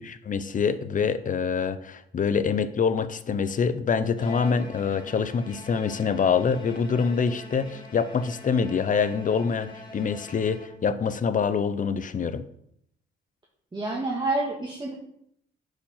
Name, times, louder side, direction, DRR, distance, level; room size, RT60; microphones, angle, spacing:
voice 1, 0.0-12.4, left 6 dB, 40° left, 13 dB, 0.8 m, -25 dB
Bowed string instrument, 4.2-11.1, left 1 dB, 25° left, 2.1 m, -44 dB
voice 2, 13.7-14.9, right 2 dB, 20° right, -2 dB, 1.8 m, -28 dB
8.4 x 5.1 x 5.7 m, 0.72 s
cardioid pair, 90°, 20 cm